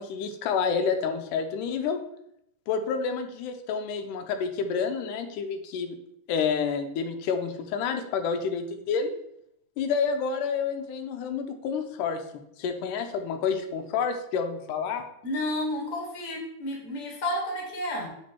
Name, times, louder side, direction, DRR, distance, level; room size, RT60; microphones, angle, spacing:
voice 1, 0.0-2.0 2.7-6.0 6.3-9.1 9.8-12.2 12.6-15.0, left 6 dB, 90° left, 6 dB, 2.2 m, -29 dB
voice 2, 15.2-18.1, left 1 dB, 40° left, 0 dB, 1.6 m, -31 dB
6.1 x 4.4 x 4.4 m, 0.77 s
omnidirectional pair, 3.7 m